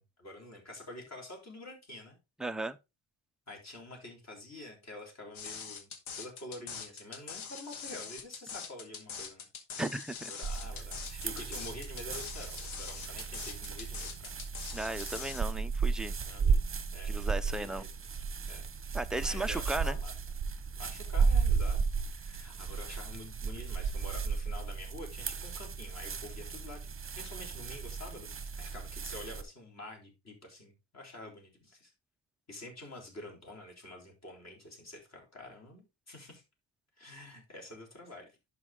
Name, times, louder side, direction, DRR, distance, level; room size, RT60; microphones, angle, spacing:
voice 1, 0.0-2.2 3.5-5.9 6.2-9.5 10.2-14.3 16.2-16.5 16.9-17.9 18.5-20.1 20.7-21.8 22.1-31.9 32.5-36.4 37.0-38.3, left 2 dB, 35° left, 3.9 m, -48 dB
voice 2, 2.4-2.8 9.8-10.3 14.7-16.1 17.0-17.8 18.9-20.0, right 2 dB, ahead, 0.3 m, -35 dB
sound 1, 5.3-15.4, left 6 dB, 80° left, 2.0 m, -43 dB
sound 2, 10.4-29.4, right 5 dB, 25° right, 1.0 m, -34 dB
11.0 x 5.4 x 3.6 m
cardioid pair, 155°, 47 cm